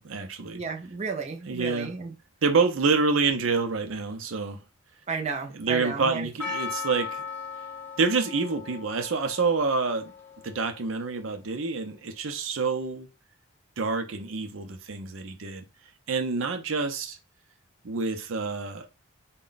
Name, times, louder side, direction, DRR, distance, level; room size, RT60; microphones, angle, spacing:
voice 1, 0.0-0.6 1.5-1.9 2.4-4.6 5.6-7.2 8.0-10.1 10.4-13.1 13.8-15.6 16.1-17.2 17.8-18.9, right 4 dB, 75° right, 0.6 m, -27 dB
voice 2, 0.5-2.2 5.1-6.3, right 5 dB, 35° right, 0.6 m, -33 dB
Percussion, 6.4-11.3, left 5 dB, 10° left, 0.6 m, -38 dB
4.1 x 2.2 x 3.9 m
head